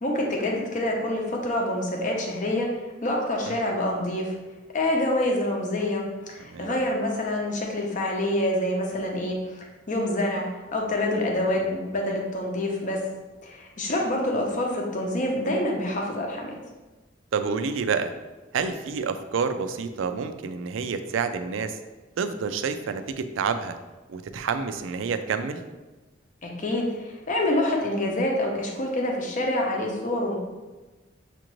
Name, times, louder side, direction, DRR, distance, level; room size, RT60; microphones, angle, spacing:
voice 1, 0.0-2.7 3.0-4.3 4.7-6.0 6.3-9.6 9.9-10.5 10.7-13.0 13.4-16.6 26.4-30.4, left 1 dB, 40° left, 0 dB, 0.7 m, -26 dB
voice 2, 17.3-18.1 18.5-21.8 22.2-23.8 24.1-25.6, right 5 dB, 85° right, 9 dB, 0.4 m, -28 dB
6.6 x 2.5 x 3.0 m, 1.2 s
head